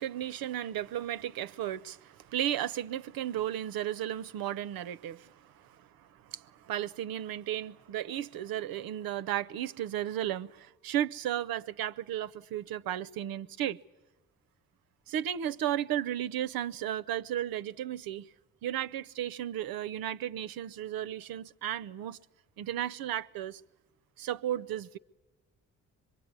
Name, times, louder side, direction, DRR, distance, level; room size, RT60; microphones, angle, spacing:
voice 1, 0.0-13.8 15.1-18.3 18.6-22.2 22.6-23.6 24.2-25.0, right 11 dB, 60° right, 0.8 m, -34 dB
24.0 x 22.5 x 9.7 m
hypercardioid pair, 50°, 40 cm